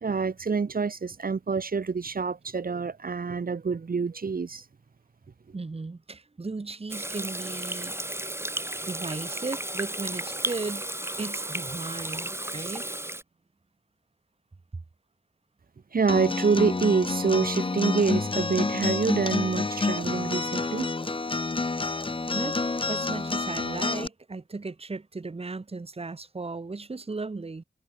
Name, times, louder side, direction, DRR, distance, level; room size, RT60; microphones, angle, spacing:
voice 1, 0.0-4.6 15.9-20.9, right 5 dB, 55° right, 1.3 m, -26 dB
voice 2, 5.5-7.9 8.8-10.8 11.2-12.9 22.3-22.6 22.9-27.6, right 3 dB, 35° right, 1.4 m, -36 dB
Water tap faucet / Sink (filling or washing), 6.9-13.2, right 1 dB, 15° right, 3.0 m, -34 dB
Acoustic guitar, 16.1-24.1, left 3 dB, 30° left, 1.0 m, -28 dB
wide cardioid pair, 70°, 18 cm